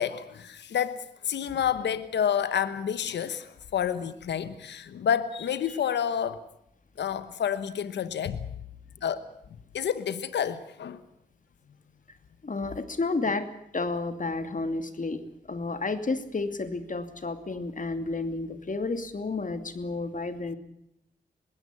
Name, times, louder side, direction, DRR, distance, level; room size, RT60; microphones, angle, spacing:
voice 1, 0.0-6.4 7.0-8.5 9.0-9.2 9.7-11.0, left 8 dB, 90° left, 1.1 m, -29 dB
voice 2, 12.4-13.5 13.7-15.2 15.5-20.6, left 3 dB, 50° left, 2.7 m, -31 dB
21.0 x 16.0 x 9.9 m
cardioid pair, 45°, 18 cm